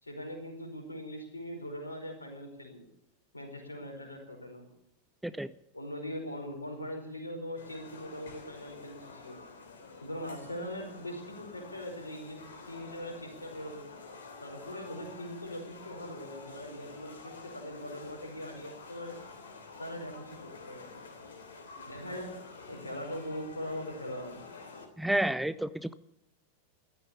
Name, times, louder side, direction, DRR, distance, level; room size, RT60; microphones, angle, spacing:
voice 1, 0.0-2.9 3.3-4.7 5.7-9.4 10.0-13.9 14.4-19.2 19.8-20.9 21.9-22.4 22.7-24.4, equal, 80° left, 3 dB, 4.8 m, -41 dB
sound 1, 7.6-24.9, left 4 dB, 65° left, 3.3 m, -49 dB
voice 2, 25.0-25.9, right 1 dB, 5° right, 15 dB, 0.5 m, -30 dB
14.5 x 13.0 x 7.0 m, 0.83 s
figure-of-eight pair, 90°, 0 cm